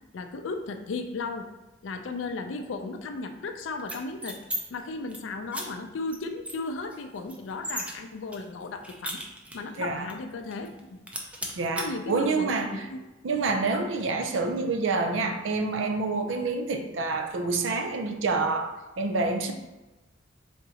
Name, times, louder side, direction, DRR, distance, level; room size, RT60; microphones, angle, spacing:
voice 1, 0.1-1.5 1.8-4.4 4.7-9.2 9.5-11.1 11.8-13.0, left 3 dB, 90° left, 7 dB, 0.4 m, -35 dB
sound 1, 3.8-4.6 4.9-5.2 5.5-5.6 6.1-6.2 6.4-7.9 8.3-9.7 10.1-10.2 10.5-10.8 11.1-11.9, right 1 dB, 5° right, 0.5 m, -36 dB
voice 2, 11.5-12.7 13.2-19.5, right 3 dB, 85° right, 5 dB, 0.5 m, -27 dB
3.9 x 3.5 x 2.8 m, 1.1 s
head